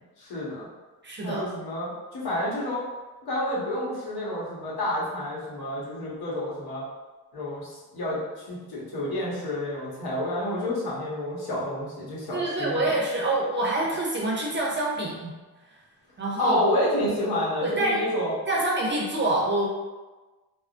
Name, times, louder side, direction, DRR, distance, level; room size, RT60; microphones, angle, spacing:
voice 1, 0.2-0.7 1.2-2.8 3.2-6.8 7.3-12.8 16.4-18.4, left 1 dB, 75° left, -6 dB, 1.1 m, -29 dB
voice 2, 1.0-1.4 12.3-15.3 16.2-16.6 17.6-18.0 18.5-19.7, right 2 dB, 30° right, -3 dB, 0.6 m, -26 dB
3.4 x 2.0 x 2.4 m, 1.2 s
cardioid pair, 130°, 38 cm